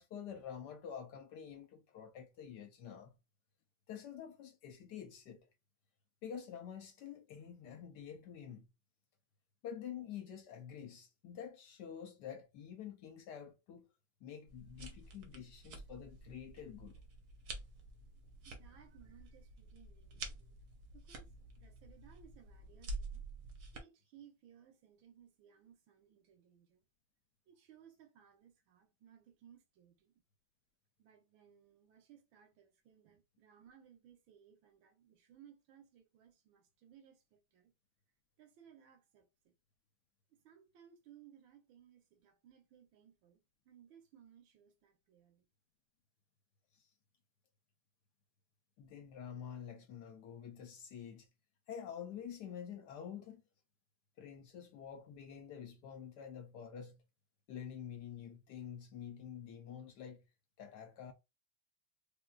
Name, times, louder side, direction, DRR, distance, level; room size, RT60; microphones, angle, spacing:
voice 1, 0.0-3.2 3.9-5.5 6.2-8.7 9.6-13.9 14.2-17.0 46.7-46.9 48.8-51.3 51.7-53.4 54.2-57.0 57.5-60.2 60.6-61.1, left 8 dB, 70° left, 1.1 m, -48 dB
sound 1, 14.5-23.8, right 2 dB, 60° right, 1.1 m, -49 dB
voice 2, 18.4-20.6 20.9-21.3 21.6-23.2 23.7-26.9 27.5-30.2 31.0-37.7 38.4-39.5 40.3-45.5, right 9 dB, 80° right, 1.6 m, -63 dB
3.7 x 2.6 x 2.3 m
omnidirectional pair, 2.1 m